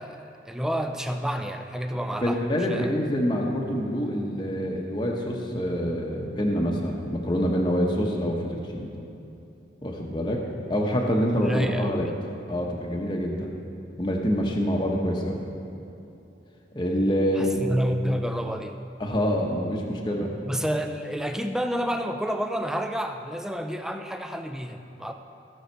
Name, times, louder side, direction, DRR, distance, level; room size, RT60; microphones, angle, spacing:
voice 1, 0.0-2.4 2.7-2.9 11.4-12.1 17.4-18.8 20.5-25.1, equal, 5° right, 6 dB, 0.4 m, -29 dB
voice 2, 2.2-8.9 9.8-10.4 10.7-12.1 12.5-13.5 14.0-15.4 16.7-17.6 19.0-20.3, equal, 25° left, -1 dB, 0.9 m, -26 dB
15.5 x 6.4 x 4.5 m, 2.9 s
head